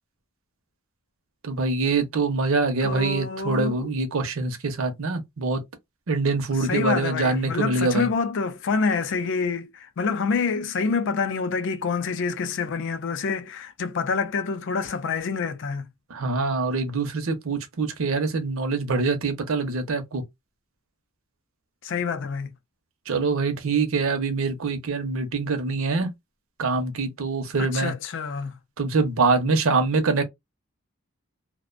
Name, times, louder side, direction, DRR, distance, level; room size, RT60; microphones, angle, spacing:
voice 1, 1.4-5.6 6.1-8.1 16.1-20.2 23.1-26.1 26.6-27.9 28.8-30.2, right 3 dB, 65° right, 0.6 m, -24 dB
voice 2, 2.8-3.9 6.6-15.8 21.8-22.5 27.6-28.5, left 5 dB, 55° left, 0.4 m, -27 dB
2.4 x 2.1 x 2.4 m
head